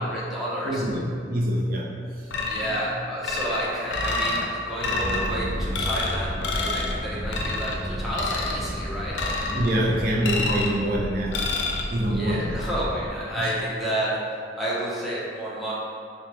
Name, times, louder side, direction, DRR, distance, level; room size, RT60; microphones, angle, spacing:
voice 1, 0.0-0.9 2.5-9.2 12.1-14.2 14.6-15.7, equal, ahead, -8 dB, 0.6 m, -30 dB
voice 2, 0.7-1.9 2.5-2.8 9.5-11.5 11.9-12.6 13.4-13.5, right 1 dB, 55° right, -2 dB, 0.5 m, -25 dB
sound 1, 2.3-2.9 3.2-4.4 4.8-5.3 5.7-6.1 6.4-6.9 7.3-7.8 8.1-8.6 9.1-9.7 10.2-10.8 11.3-11.8, left 3 dB, 75° left, 0.4 m, -28 dB
sound 2, 5.0-13.1, equal, 35° left, 1.2 m, -32 dB
4.1 x 2.1 x 3.2 m, 2.4 s
head